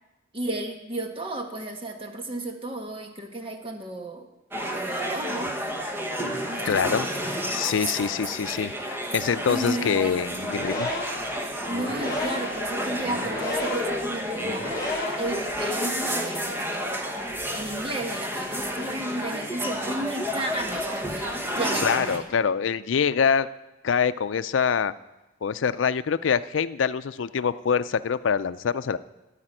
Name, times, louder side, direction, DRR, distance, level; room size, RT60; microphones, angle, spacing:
voice 1, 0.3-4.3 4.6-5.6 6.5-7.7 9.5-10.2 11.7-14.7 15.2-17.0 17.5-22.3, right 1 dB, 30° right, 4 dB, 1.2 m, -33 dB
sound 1, 4.5-22.2, equal, 10° right, 1.0 m, -30 dB
voice 2, 6.6-7.1 7.5-10.9 21.8-23.5 23.8-24.9 25.4-29.0, left 6 dB, 90° left, 14 dB, 0.4 m, -25 dB
sound 2, 10.2-15.4, left 1 dB, 20° left, 3.3 m, -33 dB
14.0 x 5.0 x 8.9 m, 1.0 s
head